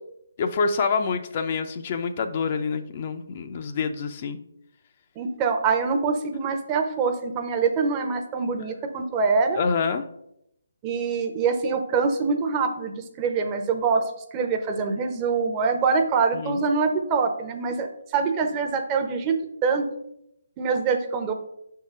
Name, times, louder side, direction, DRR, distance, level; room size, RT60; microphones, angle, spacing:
voice 1, 0.4-4.4 9.6-10.0 16.3-16.6, left 5 dB, 40° left, 7 dB, 0.5 m, -26 dB
voice 2, 5.2-9.6 10.8-14.0 14.3-19.4 19.6-19.9 20.6-21.3, right 5 dB, 20° right, 5 dB, 0.7 m, -24 dB
5.7 x 3.7 x 5.4 m, 0.78 s
figure-of-eight pair, 150°, 0 cm